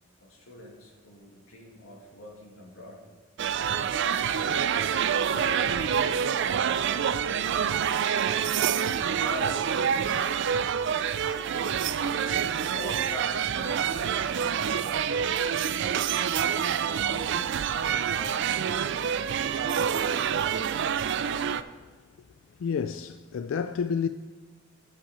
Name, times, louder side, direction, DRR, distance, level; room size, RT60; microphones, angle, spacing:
voice 1, 0.2-3.0 4.2-7.1 9.1-10.2 12.2-16.3 17.0-19.0, left 1 dB, 90° left, 2.3 m, -44 dB
sound 1, 3.4-21.6, right 8 dB, 60° right, 0.4 m, -27 dB
voice 2, 21.5-21.9 22.6-24.1, left 6 dB, 70° left, 0.3 m, -30 dB
8.3 x 5.7 x 6.8 m
head